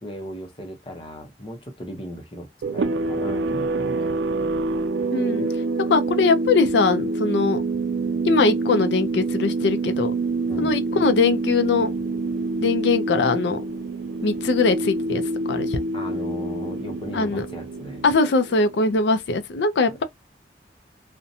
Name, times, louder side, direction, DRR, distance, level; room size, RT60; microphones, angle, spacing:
voice 1, 0.0-2.5 2.7-4.4 10.5-10.8 15.9-18.0 19.9-20.0, equal, 30° left, 0.6 m, -37 dB
sound 1, 2.6-18.9, right 3 dB, 85° right, 0.4 m, -26 dB
voice 2, 5.1-5.5 5.9-7.6 8.2-10.1 10.6-11.9 12.6-13.6 14.2-15.2 15.5-15.8 17.1-17.4 18.0-20.0, left 3 dB, 80° left, 0.4 m, -21 dB
2.6 x 2.1 x 2.6 m
head